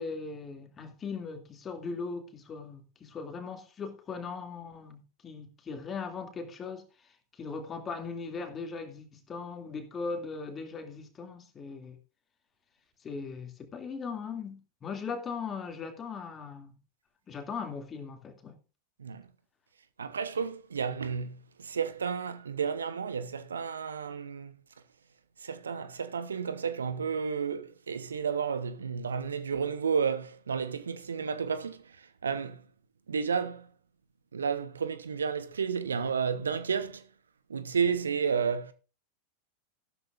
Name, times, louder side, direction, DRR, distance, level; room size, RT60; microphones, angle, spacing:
voice 1, 0.0-12.0 13.0-16.8 17.3-18.6, left 5 dB, 20° left, 2.5 m, -39 dB
voice 2, 20.0-24.5 25.4-32.6 33.1-33.7 34.3-37.1 37.5-38.7, right 6 dB, 70° right, 1.0 m, -32 dB
14.0 x 12.5 x 2.5 m
figure-of-eight pair, 90°, 0 cm